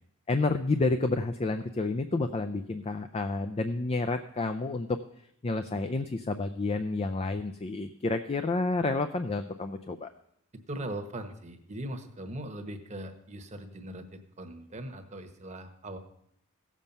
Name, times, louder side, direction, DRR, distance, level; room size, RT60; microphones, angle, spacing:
voice 1, 0.3-5.0 5.4-10.1, left 3 dB, 25° left, 8 dB, 0.4 m, -30 dB
voice 2, 10.7-16.0, right 1 dB, 30° right, 6 dB, 1.1 m, -40 dB
16.0 x 7.3 x 5.4 m, 0.73 s
head